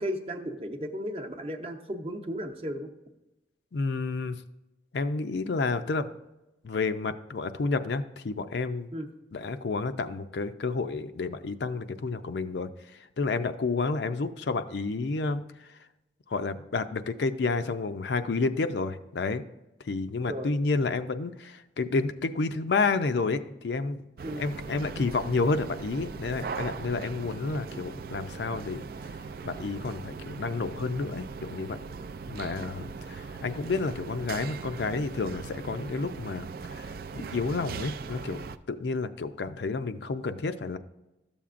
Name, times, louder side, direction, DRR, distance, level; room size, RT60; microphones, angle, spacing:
voice 1, 0.0-2.9 8.9-9.1 20.3-20.5 24.2-24.4, equal, 35° right, 3 dB, 0.7 m, -34 dB
voice 2, 3.7-4.4 4.9-6.1 6.6-8.9 9.3-15.9 16.3-19.4 19.8-24.0 24.4-31.8 32.3-40.8, left 3 dB, 75° left, 10 dB, 0.5 m, -30 dB
sound 1, 24.2-38.6, right 5 dB, 55° right, 0.3 m, -39 dB
12.5 x 7.1 x 2.5 m, 0.96 s
head